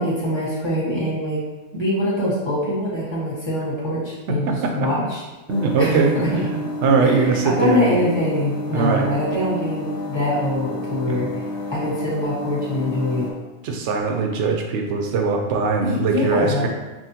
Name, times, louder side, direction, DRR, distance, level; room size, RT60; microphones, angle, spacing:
voice 1, 0.0-1.4 1.7-5.2 5.8-6.3 7.0-11.4 11.7-13.3 15.8-16.7, left 1 dB, 25° left, -8 dB, 1.3 m, -24 dB
sound 1, 5.5-13.3, left 1 dB, 65° left, 1.0 m, -30 dB
voice 2, 5.5-7.9 8.7-9.1 11.1-11.3 13.6-16.7, right 4 dB, 80° right, 2 dB, 0.9 m, -21 dB
6.0 x 2.1 x 2.8 m, 1.2 s
omnidirectional pair, 1.2 m